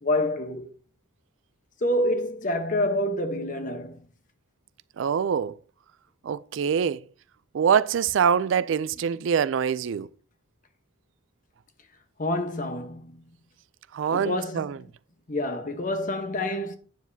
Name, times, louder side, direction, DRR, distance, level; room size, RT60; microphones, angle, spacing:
voice 1, 0.0-0.7 1.8-4.0 12.2-13.2 14.1-14.8 15.3-16.8, left 1 dB, 40° left, 1.1 m, -27 dB
voice 2, 5.0-5.5 6.2-7.0 7.5-10.1 13.9-14.8, right 7 dB, 70° right, 0.4 m, -24 dB
9.2 x 7.1 x 2.7 m
head